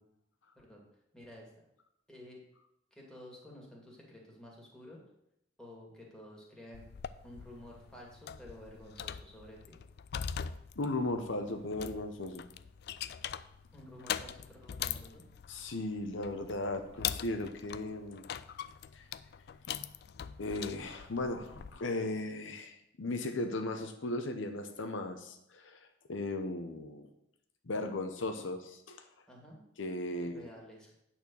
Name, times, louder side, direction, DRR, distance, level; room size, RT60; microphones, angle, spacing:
voice 1, 1.1-1.5 2.1-2.4 2.9-5.0 5.6-6.8 7.2-9.8 13.7-15.2 29.3-29.6 30.1-30.9, left 1 dB, 5° left, -3 dB, 2.2 m, -51 dB
sound 1, 6.7-21.8, left 9 dB, 55° left, 0.3 m, -42 dB
voice 2, 10.8-12.4 15.5-18.2 18.9-19.0 19.7-19.8 20.4-27.1 27.6-29.0 29.8-30.5, left 2 dB, 75° left, 6 dB, 0.8 m, -37 dB
9.0 x 4.4 x 6.9 m, 0.79 s
head